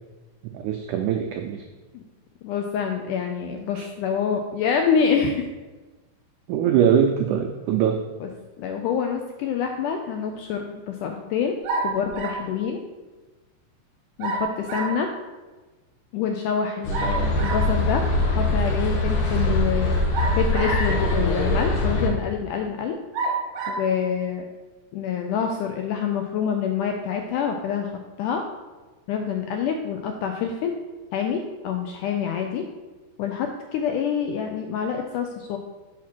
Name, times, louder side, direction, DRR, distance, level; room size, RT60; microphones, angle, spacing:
voice 1, 0.5-1.6 3.8-3.9 6.5-8.0, right 8 dB, 90° right, 4 dB, 1.7 m, -22 dB
voice 2, 2.4-5.5 8.2-8.3 8.6-11.6 11.8-12.8 14.2-15.1 16.1-18.0 18.4-20.0 20.4-23.0 23.7-24.5 24.9-27.9 28.2-28.4 29.1-30.7 31.1-32.7 33.2-35.6, left 7 dB, 85° left, 3 dB, 1.8 m, -26 dB
sound 1, 11.6-12.5 14.2-15.0 16.9-17.7 20.1-21.0 21.7-21.8 23.1-23.9, right 4 dB, 70° right, 2.1 m, -28 dB
sound 2, 16.8-22.1, left 2 dB, 70° left, 2.3 m, -23 dB
5.6 x 4.8 x 6.0 m, 1.2 s
omnidirectional pair, 4.1 m